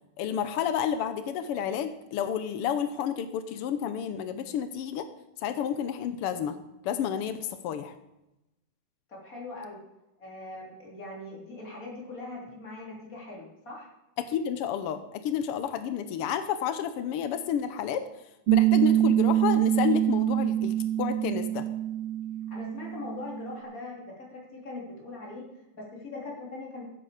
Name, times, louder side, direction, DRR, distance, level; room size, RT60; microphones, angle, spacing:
voice 1, 0.2-5.1 5.4-6.6 6.8-7.9 14.2-18.0 18.5-21.7, left 8 dB, 90° left, 10 dB, 1.2 m, -30 dB
voice 2, 9.1-9.8 10.2-13.9 22.5-25.5 25.7-26.8, left 2 dB, 25° left, -3 dB, 3.4 m, -41 dB
Piano, 18.5-23.6, right 13 dB, 90° right, 2.2 m, -25 dB
15.0 x 7.8 x 5.0 m, 0.92 s
omnidirectional pair, 3.5 m